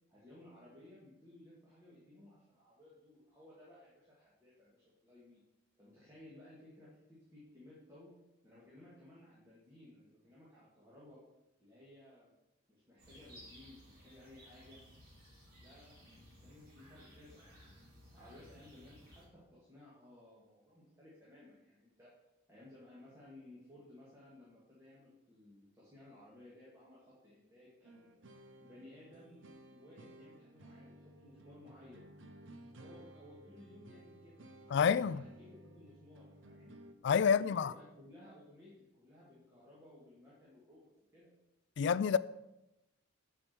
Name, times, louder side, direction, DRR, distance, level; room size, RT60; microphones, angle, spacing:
voice 1, 0.1-5.4 5.8-8.1 8.4-11.2 11.6-12.3 12.7-14.8 15.6-16.1 16.4-22.1 22.5-28.1 28.6-32.0 32.7-36.8 37.3-41.3, left 1 dB, 15° right, 2.1 m, -58 dB
sound 1, 13.0-19.3, equal, 45° right, 3.5 m, -58 dB
sound 2, 27.8-36.9, right 1 dB, 65° right, 0.8 m, -56 dB
voice 2, 34.7-35.2 37.0-37.7 41.8-42.2, left 6 dB, 55° left, 0.3 m, -28 dB
8.5 x 4.8 x 6.9 m
head